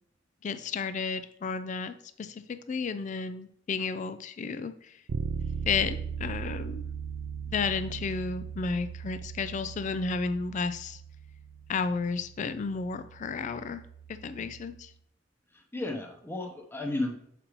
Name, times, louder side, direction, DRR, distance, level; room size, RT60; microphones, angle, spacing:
voice 1, 0.4-5.0 5.7-6.8 7.5-11.0 11.7-13.8 14.1-14.9, left 5 dB, 40° left, 12 dB, 0.3 m, -32 dB
Bass guitar, 5.1-14.9, right 6 dB, 90° right, 0.4 m, -39 dB
voice 2, 15.5-17.2, left 2 dB, 10° left, 2 dB, 0.8 m, -33 dB
7.3 x 5.0 x 3.1 m, 0.71 s
head